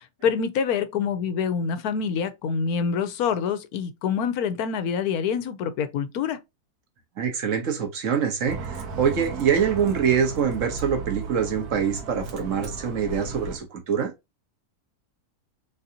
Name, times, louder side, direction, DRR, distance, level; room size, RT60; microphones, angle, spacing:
voice 1, 0.0-6.4, left 6 dB, 80° left, 1.2 m, -26 dB
voice 2, 7.2-14.1, right 7 dB, 60° right, 1.5 m, -25 dB
Bus, 8.4-13.6, right 4 dB, 85° right, 1.6 m, -35 dB
3.9 x 3.9 x 2.8 m
omnidirectional pair, 1.6 m